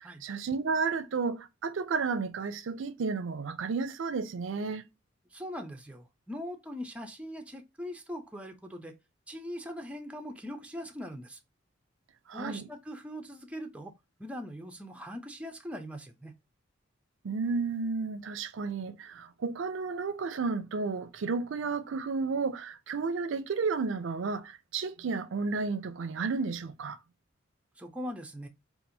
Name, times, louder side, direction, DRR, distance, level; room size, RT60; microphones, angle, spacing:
voice 1, 0.2-4.8 12.3-12.6 17.2-27.0, right 4 dB, 70° right, 0.4 m, -32 dB
voice 2, 5.3-8.9 9.3-11.4 12.3-13.9 14.2-16.3 27.8-28.5, equal, 5° right, 0.4 m, -41 dB
4.1 x 2.5 x 2.7 m
head